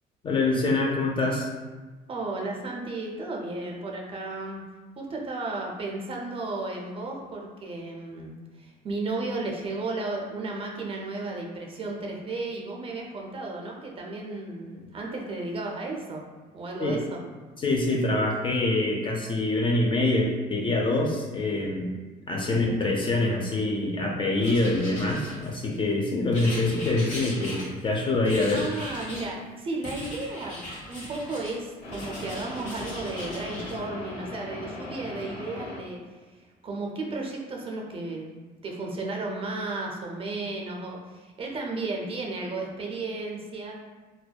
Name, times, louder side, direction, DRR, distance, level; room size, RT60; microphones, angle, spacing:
voice 1, 0.2-1.5 16.8-17.0 17.6-21.9 22.3-28.6, left 2 dB, 30° left, 0 dB, 0.4 m, -25 dB
voice 2, 2.1-4.6 5.0-16.2 16.5-17.2 22.5-22.8 28.5-36.0 36.3-43.8, right 2 dB, 35° right, 0 dB, 0.4 m, -34 dB
Writing, 24.4-25.7 26.3-27.9 28.2-29.3 29.8-31.6 31.9-33.7, left 1 dB, 45° left, 1.1 m, -39 dB
sound 1, 31.8-36.0, left 1 dB, 70° left, 0.7 m, -39 dB
2.6 x 2.1 x 2.2 m, 1.3 s
cardioid pair, 110°, 17 cm